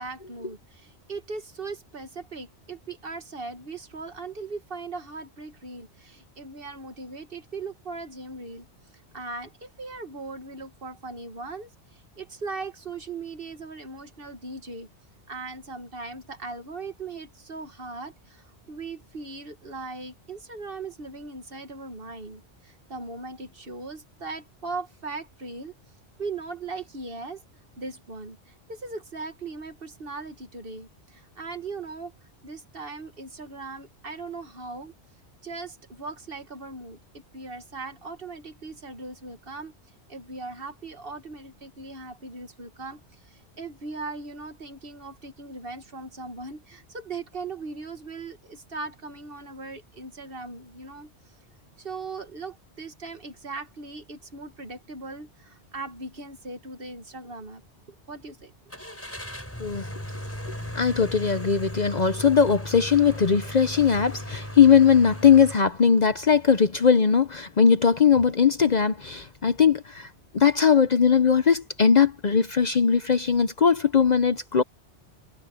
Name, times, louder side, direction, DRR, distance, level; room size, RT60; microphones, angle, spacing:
voice 1, 0.0-8.7 9.1-14.9 15.3-25.7 26.2-27.4 27.8-32.1 32.4-34.9 35.4-37.0 37.3-39.7 40.1-51.1 51.8-57.6 58.1-58.5, right 3 dB, 55° right, 2.0 m, -39 dB
Car / Engine starting, 58.7-65.6, equal, 10° left, 6.2 m, -37 dB
voice 2, 60.7-70.1 70.3-74.6, left 6 dB, 45° left, 0.7 m, -20 dB
omnidirectional pair, 1.2 m